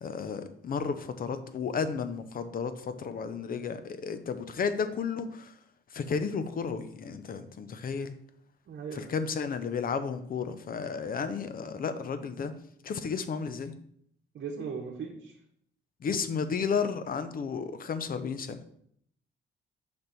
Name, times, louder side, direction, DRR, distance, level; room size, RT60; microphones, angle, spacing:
voice 1, 0.0-5.5 5.9-8.1 8.9-12.6 12.8-13.7 16.0-18.6, left 5 dB, 45° left, 11 dB, 0.7 m, -33 dB
voice 2, 8.7-9.1 14.3-15.3, right 5 dB, 55° right, 0 dB, 1.0 m, -38 dB
5.3 x 4.0 x 5.9 m, 0.69 s
cardioid pair, 90°, 20 cm